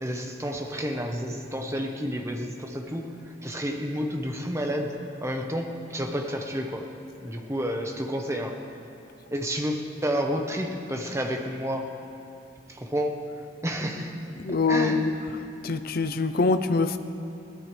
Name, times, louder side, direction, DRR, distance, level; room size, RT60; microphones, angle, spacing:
voice 1, 0.0-6.9 7.2-8.6 9.3-11.9 12.7-13.4 13.6-14.2 14.7-15.2, equal, 15° right, 3 dB, 1.1 m, -30 dB
voice 2, 14.4-15.1 15.6-17.0, left 3 dB, 50° left, 10 dB, 0.7 m, -24 dB
21.5 x 17.5 x 3.4 m, 2.6 s
head